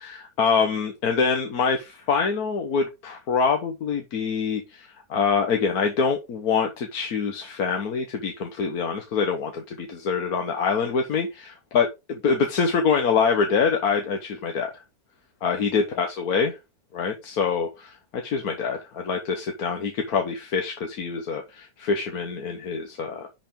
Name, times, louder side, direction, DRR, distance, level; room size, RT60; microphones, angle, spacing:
voice 1, 0.0-11.9 12.2-14.7 15.4-16.6 16.9-23.3, left 5 dB, 80° left, 1.6 m, -25 dB
10.0 x 5.0 x 3.7 m
omnidirectional pair, 1.6 m